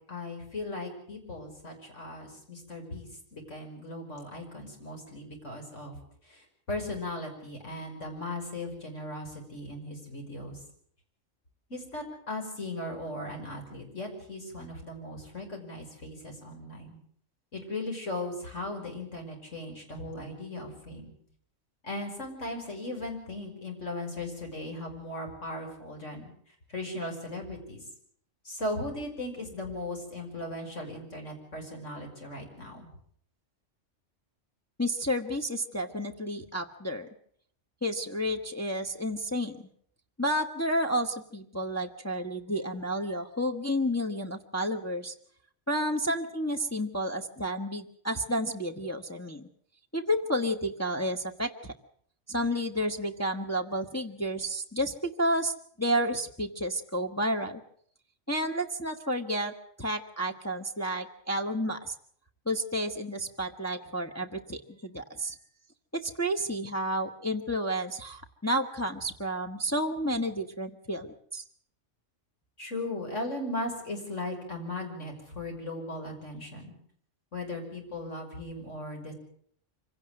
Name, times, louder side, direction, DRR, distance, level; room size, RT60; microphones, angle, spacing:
voice 1, 0.1-6.0 6.2-10.6 11.7-17.0 17.5-21.1 21.8-26.3 26.7-27.8 28.4-32.9 72.6-76.7 77.3-79.1, left 1 dB, 75° left, 2 dB, 6.2 m, -37 dB
voice 2, 34.8-37.1 37.8-39.7 40.2-45.1 45.7-49.5 49.9-51.7 52.3-57.6 58.3-59.5 59.8-61.9 62.5-65.4 66.0-71.4, equal, 15° left, 3 dB, 1.2 m, -31 dB
25.0 x 17.0 x 7.6 m, 0.65 s
omnidirectional pair, 1.3 m